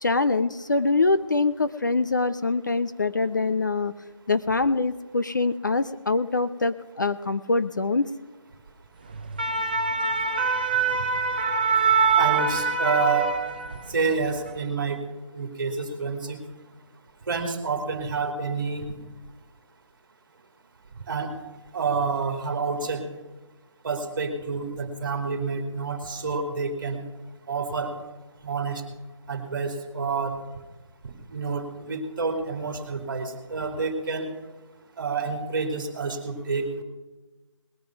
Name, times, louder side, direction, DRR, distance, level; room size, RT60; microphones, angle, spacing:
voice 1, 0.0-3.9 4.3-8.1, left 3 dB, 35° left, 13 dB, 0.4 m, -24 dB
sound 1, 9.1-13.9 14.3-14.5, right 5 dB, 15° right, 0.5 m, -24 dB
voice 2, 12.2-13.3 13.9-15.0 15.3-16.4 17.3-18.9 21.1-21.3 21.7-23.0 23.8-27.0 27.5-27.9 28.4-28.8 29.3-30.4 31.3-34.2 35.0-36.8, right 4 dB, 40° right, 5 dB, 2.3 m, -28 dB
19.5 x 9.2 x 5.9 m, 1.2 s
figure-of-eight pair, 170°, 16 cm